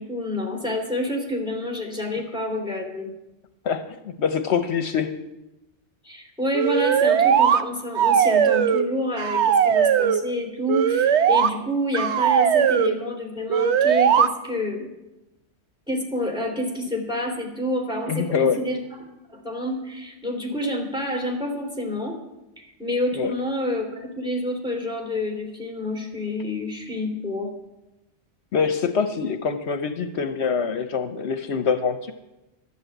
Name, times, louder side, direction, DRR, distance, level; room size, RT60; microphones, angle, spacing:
voice 1, 0.0-3.1 6.0-14.9 15.9-18.8 19.3-22.2 22.6-27.5, left 1 dB, 5° right, 0 dB, 2.9 m, -28 dB
voice 2, 3.6-5.1 18.1-18.6 23.1-23.3 28.5-32.1, left 6 dB, 70° left, 8 dB, 1.0 m, -24 dB
sound 1, 6.5-7.6 8.0-8.9 9.2-10.2 10.7-11.5 11.9-12.9 13.5-14.3, right 8 dB, 75° right, 1.0 m, -19 dB
12.5 x 8.6 x 7.8 m, 0.98 s
omnidirectional pair, 1.2 m